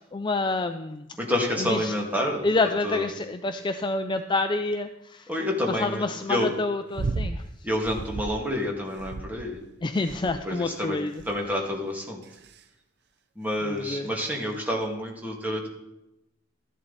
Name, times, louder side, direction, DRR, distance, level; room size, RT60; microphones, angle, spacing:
voice 1, 0.1-1.1 1.6-1.9 2.4-5.3 5.7-7.4 9.8-11.1 13.6-14.1, left 3 dB, 25° left, 8 dB, 0.4 m, -28 dB
voice 2, 1.2-2.5 2.8-3.1 5.3-6.5 7.6-9.6 10.4-11.0 11.2-12.2 13.4-15.7, left 1 dB, 10° right, -1 dB, 2.2 m, -28 dB
sound 1, 6.9-7.4 7.8-8.4 9.0-9.6 10.1-10.5 11.2-11.5 12.2-12.6 13.5-13.6, right 3 dB, 55° right, 0.6 m, -33 dB
13.5 x 11.0 x 4.1 m, 0.89 s
head